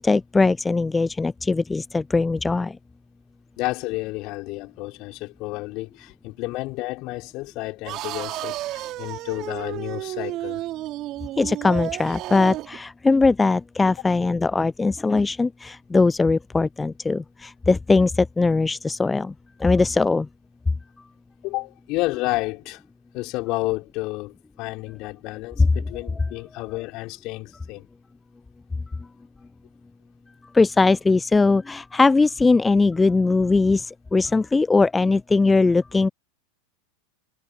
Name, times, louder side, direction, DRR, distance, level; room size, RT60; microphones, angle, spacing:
voice 1, 0.0-2.8 11.4-19.3 19.6-20.3 25.6-25.7 30.5-36.1, left 3 dB, 10° left, 0.5 m, -20 dB
voice 2, 3.6-10.6 21.4-22.8 23.1-27.9, left 22 dB, 45° left, 5.3 m, -31 dB
sound 1, 7.8-12.8, right 15 dB, 40° right, 4.3 m, -32 dB
figure-of-eight pair, 85°, 0 cm